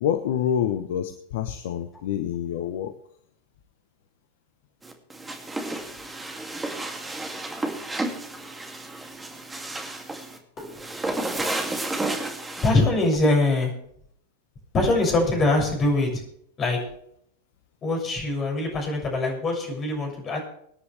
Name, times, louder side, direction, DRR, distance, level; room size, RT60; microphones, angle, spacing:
voice 1, 0.0-2.9, left 9 dB, 55° left, 9 dB, 1.0 m, -27 dB
sound 1, 4.8-12.7, right 2 dB, 10° right, 2.5 m, -32 dB
voice 2, 11.0-11.7 12.6-13.7 14.7-16.2 16.6-16.8 17.8-20.5, left 2 dB, 25° left, 1 dB, 6.8 m, -23 dB
24.0 x 9.7 x 3.4 m, 0.69 s
figure-of-eight pair, 90°, 0 cm